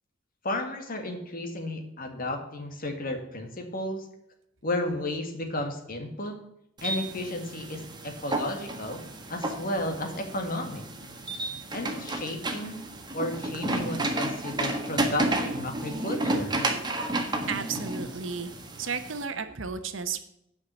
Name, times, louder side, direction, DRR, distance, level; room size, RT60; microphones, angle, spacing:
voice 1, 0.4-4.1 4.6-6.4 6.8-9.0 9.3-10.9 11.7-12.9 13.1-16.5, left 1 dB, 45° left, 4 dB, 2.0 m, -33 dB
sound 1, 6.8-19.2, right 2 dB, 20° right, 1.5 m, -32 dB
voice 2, 17.5-18.5 18.8-20.2, right 5 dB, 70° right, 9 dB, 1.0 m, -33 dB
9.6 x 5.9 x 7.0 m, 0.77 s
head